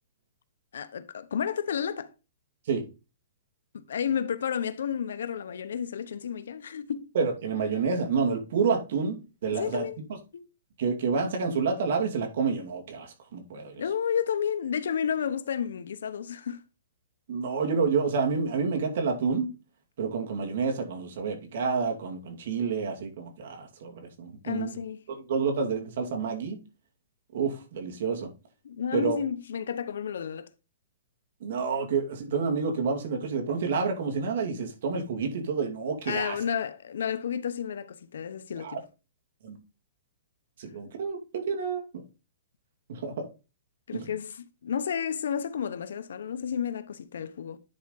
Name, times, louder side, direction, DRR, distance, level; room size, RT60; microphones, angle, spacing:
voice 1, 0.7-2.1 3.7-7.1 9.5-10.0 10.3-10.5 13.7-16.6 24.4-25.0 28.6-30.5 36.1-38.8 43.9-47.6, left 8 dB, 80° left, 0.9 m, -31 dB
voice 2, 7.1-9.2 9.4-10.2 10.8-13.8 17.3-19.5 20.0-24.8 25.1-26.6 27.3-28.3 28.9-29.2 31.4-36.4 38.5-38.8 39.4-39.6 40.6-42.0 42.9-43.3 43.9-44.1, right 5 dB, 55° right, 2.4 m, -29 dB
10.0 x 4.8 x 3.9 m
hypercardioid pair, 160°, 0 cm